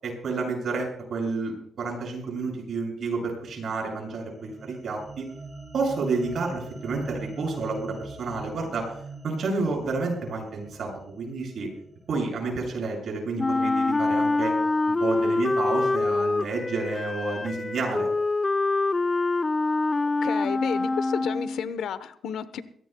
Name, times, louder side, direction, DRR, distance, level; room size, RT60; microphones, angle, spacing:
voice 1, 0.0-5.3 5.7-8.9 9.2-11.7 12.1-14.5 15.0-18.1, right 3 dB, 65° right, 1 dB, 7.0 m, -30 dB
sound 1, 4.0-12.5, right 3 dB, 30° right, 7.5 m, -43 dB
Wind instrument woodwind instrument, 13.4-21.7, left 3 dB, 25° left, 0.4 m, -25 dB
voice 2, 20.2-22.6, left 8 dB, 80° left, 13 dB, 0.9 m, -32 dB
22.5 x 17.0 x 2.3 m, 0.67 s
cardioid pair, 75°, 0 cm